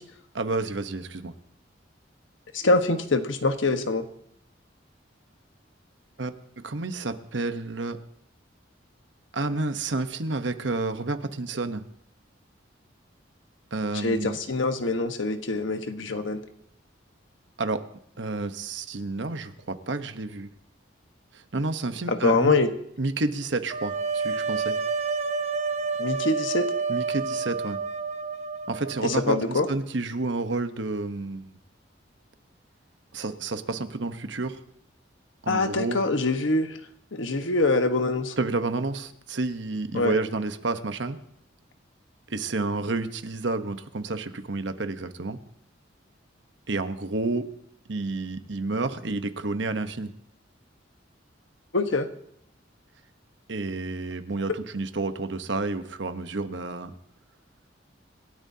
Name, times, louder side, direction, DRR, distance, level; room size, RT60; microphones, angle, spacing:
voice 1, 0.3-1.3 6.2-8.0 9.3-11.8 13.7-14.4 17.6-17.8 18.2-20.5 21.3-22.6 23.0-24.8 26.9-27.8 28.7-31.6 33.1-34.6 35.4-36.0 38.4-41.2 42.3-45.4 46.7-47.5 47.9-50.1 53.5-56.9, right 3 dB, 70° right, 9 dB, 1.0 m, -30 dB
voice 2, 2.5-4.0 14.0-16.4 22.1-22.7 26.0-26.7 29.0-29.7 35.5-36.8 37.1-38.3 39.9-40.2 51.7-52.1 54.5-54.6, left 3 dB, 85° left, 7 dB, 1.3 m, -24 dB
sound 1, 23.7-29.6, right 4 dB, 35° right, 0.8 m, -29 dB
27.0 x 13.0 x 2.8 m, 0.71 s
head